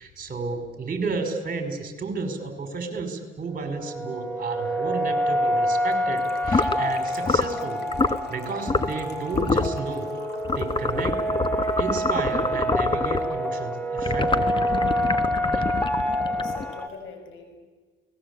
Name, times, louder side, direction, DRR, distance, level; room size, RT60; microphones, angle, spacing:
voice 1, 0.0-10.1 10.5-11.3 11.8-14.7 15.5-15.7, right 4 dB, 45° right, 7 dB, 5.2 m, -32 dB
sound 1, 3.6-16.9, equal, 5° left, 2.7 m, -27 dB
Gurgling / Trickle dribble / Fill (with liquid), 5.9-12.1 12.4-12.5 12.7-12.9 13.2-13.3, left 4 dB, 55° left, 3.8 m, -47 dB
sound 2, 6.4-6.8 7.2-7.6 7.9-8.2 8.7-9.0 9.3-9.8 10.5-13.3 14.0-16.8, left 3 dB, 25° left, 1.4 m, -26 dB
voice 2, 16.2-17.6, left 5 dB, 80° left, 6 dB, 6.2 m, -43 dB
30.0 x 20.0 x 8.6 m, 1.4 s
cardioid pair, 90°, 20 cm